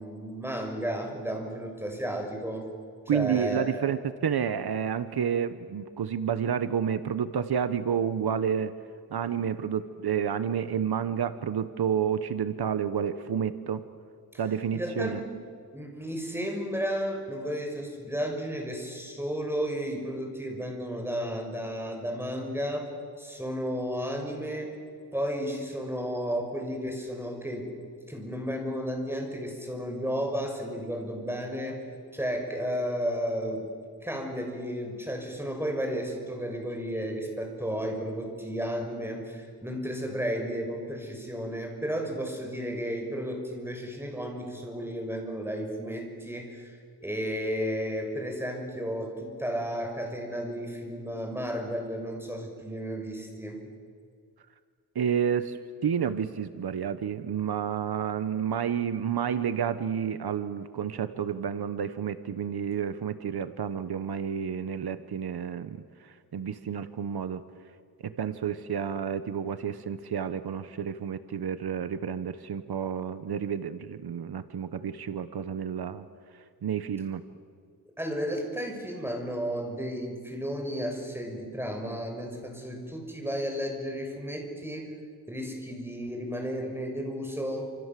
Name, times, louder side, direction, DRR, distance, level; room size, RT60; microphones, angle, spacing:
voice 1, 0.0-2.6 3.1-3.8 14.3-14.4 14.7-15.3 15.7-22.9 23.2-24.7 25.1-27.7 28.1-31.8 32.1-33.7 34.0-53.6 78.0-84.9 85.3-87.6, equal, 5° right, 2 dB, 6.4 m, -33 dB
voice 2, 3.1-8.7 9.1-13.8 14.4-15.2 54.9-67.4 68.0-76.1 76.6-77.2, right 8 dB, 80° right, 12 dB, 1.1 m, -30 dB
28.0 x 27.5 x 7.6 m, 2.1 s
wide cardioid pair, 105°, 38 cm